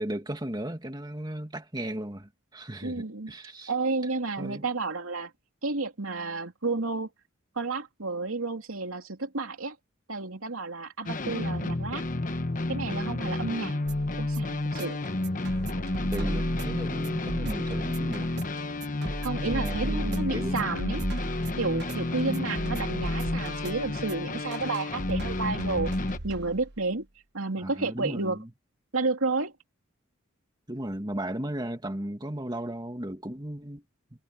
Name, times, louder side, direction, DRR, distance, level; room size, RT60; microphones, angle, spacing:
voice 1, 0.0-3.7 4.4-4.6 16.1-18.3 19.4-20.7 22.3-22.8 27.6-28.5 30.7-33.8, right 1 dB, 20° right, 2.3 m, -35 dB
voice 2, 2.8-3.3 3.7-5.3 5.6-7.1 7.5-9.8 10.1-12.0 12.7-13.8 14.2-15.0 19.2-21.1 21.6-25.9 26.2-27.1 27.3-28.4 28.9-29.5, right 3 dB, 85° right, 2.7 m, -31 dB
sound 1, 11.1-26.2, left 2 dB, 40° left, 1.1 m, -31 dB
sound 2, 13.9-26.8, right 1 dB, 55° right, 1.4 m, -36 dB
head